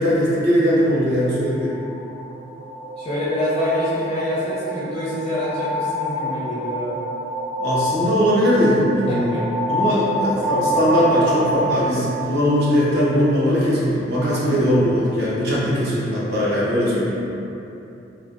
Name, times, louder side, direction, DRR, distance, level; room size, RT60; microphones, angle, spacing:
voice 1, 0.0-1.7 7.6-9.3 9.7-17.2, equal, 55° right, -8 dB, 0.7 m, -20 dB
sound 1, 1.3-13.0, right 1 dB, 85° right, 1.5 m, -27 dB
voice 2, 3.0-7.0 9.1-9.4, equal, 30° left, -9 dB, 0.4 m, -25 dB
3.3 x 2.1 x 2.4 m, 2.9 s
head